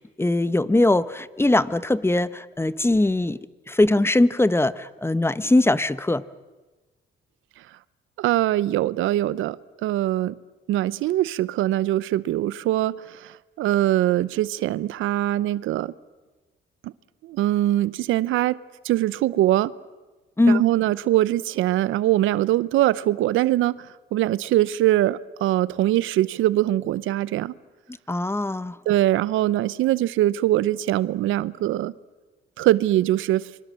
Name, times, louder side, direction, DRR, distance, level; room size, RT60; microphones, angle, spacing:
voice 1, 0.0-3.4 3.7-6.2 20.4-20.6 28.1-28.8, left 2 dB, 10° left, 16 dB, 0.9 m, -21 dB
voice 2, 8.2-9.6 9.8-10.4 10.7-15.9 16.8-16.9 17.2-18.6 18.8-19.7 20.5-27.5 28.9-31.9 32.6-33.5, right 14 dB, 85° right, 19 dB, 0.7 m, -22 dB
26.0 x 24.0 x 7.6 m, 1.2 s
cardioid pair, 90°, 20 cm